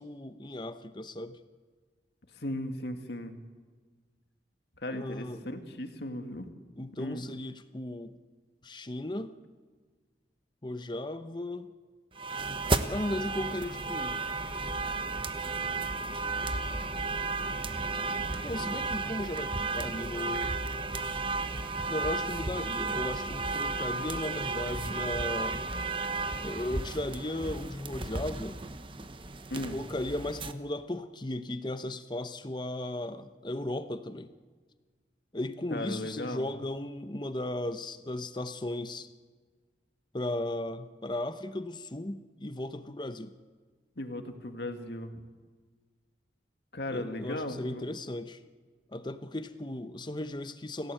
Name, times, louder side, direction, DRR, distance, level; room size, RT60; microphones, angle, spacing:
voice 1, 0.0-1.4 4.9-5.4 6.8-8.2 8.6-9.3 10.6-11.7 12.9-14.2 18.4-20.5 21.9-25.7 26.4-28.6 29.5-34.3 35.3-39.1 40.1-43.3 46.9-48.4 48.9-50.9, left 1 dB, 25° left, 10 dB, 0.9 m, -36 dB
voice 2, 2.3-3.3 4.8-6.5 7.0-7.3 29.5-29.8 35.7-36.5 44.0-45.2 46.7-47.9, left 1 dB, 65° left, 6 dB, 2.1 m, -36 dB
sound 1, 12.2-30.5, right 3 dB, 30° right, 1.0 m, -33 dB
26.5 x 17.0 x 7.8 m, 1.5 s
head